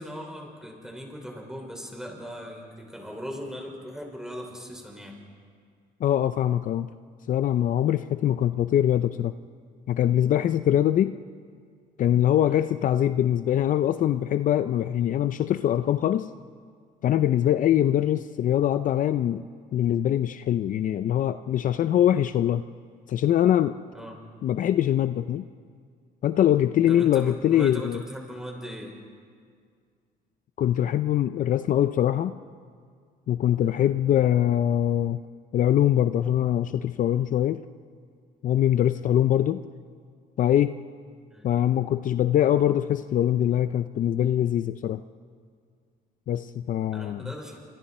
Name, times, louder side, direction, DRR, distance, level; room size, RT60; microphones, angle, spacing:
voice 1, 0.0-5.2 12.4-12.7 23.9-24.2 26.9-28.9 33.6-33.9 39.0-39.1 41.3-41.5 46.9-47.6, equal, 5° right, 0 dB, 5.4 m, -39 dB
voice 2, 6.0-6.9 7.3-9.3 9.9-11.2 12.0-16.3 17.0-19.5 19.7-22.6 23.1-23.8 24.4-25.4 26.2-28.0 30.6-32.3 33.3-35.2 35.5-37.6 38.4-39.6 40.4-40.8 41.4-45.0 46.3-47.3, left 11 dB, 50° left, 11 dB, 0.6 m, -23 dB
28.5 x 26.0 x 4.3 m, 2.1 s
cardioid pair, 110°, 17 cm